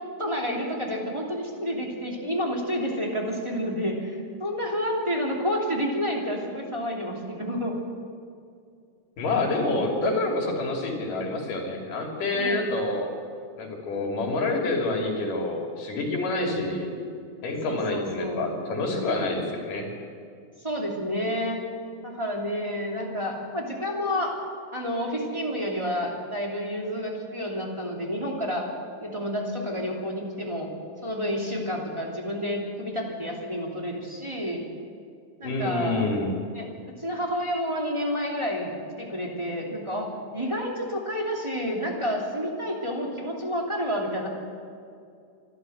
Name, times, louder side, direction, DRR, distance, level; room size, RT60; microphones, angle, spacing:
voice 1, 0.2-7.8 12.3-12.7 16.2-16.6 17.7-18.4 20.6-21.6 22.0-24.4 24.7-28.7 29.0-30.7 31.0-34.6 35.4-36.1 36.5-44.3, equal, 10° right, -2 dB, 2.6 m, -30 dB
voice 2, 9.2-13.1 13.6-16.9 17.4-19.9 35.4-36.4, left 2 dB, 75° left, 1 dB, 4.4 m, -27 dB
25.0 x 13.0 x 8.0 m, 2.3 s
omnidirectional pair, 3.8 m